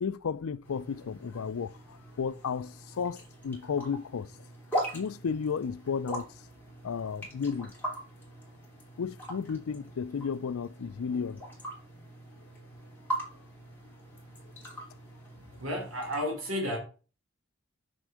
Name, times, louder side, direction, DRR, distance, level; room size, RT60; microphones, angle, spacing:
voice 1, 0.0-4.3 4.9-6.3 6.8-7.7 9.0-11.5, left 6 dB, 90° left, 0.4 m, -33 dB
sound 1, 0.6-16.2, equal, 10° left, 2.8 m, -41 dB
voice 2, 15.4-16.8, equal, 90° right, 2.5 m, -32 dB
6.3 x 4.5 x 6.3 m
head